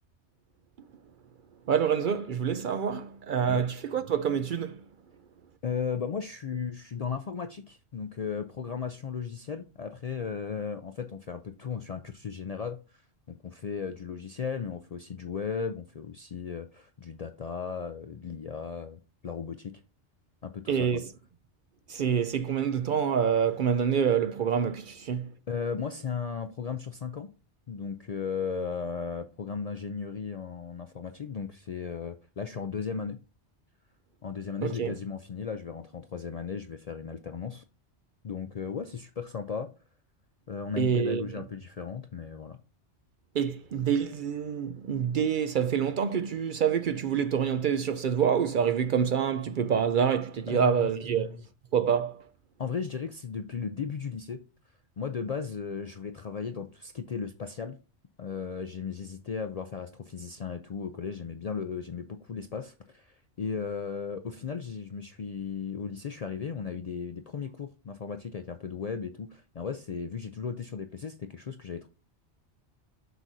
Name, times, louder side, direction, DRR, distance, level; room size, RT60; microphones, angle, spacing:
voice 1, 1.7-4.8 20.7-21.1 21.9-25.3 34.6-34.9 40.8-41.3 43.3-51.4 51.7-52.2, right 7 dB, 60° right, 0.6 m, -27 dB
voice 2, 5.6-13.0 13.3-19.7 20.4-21.0 25.5-27.3 27.7-33.2 34.2-37.6 38.2-39.7 40.5-42.6 50.5-51.4 52.6-54.4 55.0-57.8 58.2-71.9, left 6 dB, 55° left, 0.4 m, -36 dB
7.8 x 6.1 x 2.7 m
omnidirectional pair, 1.2 m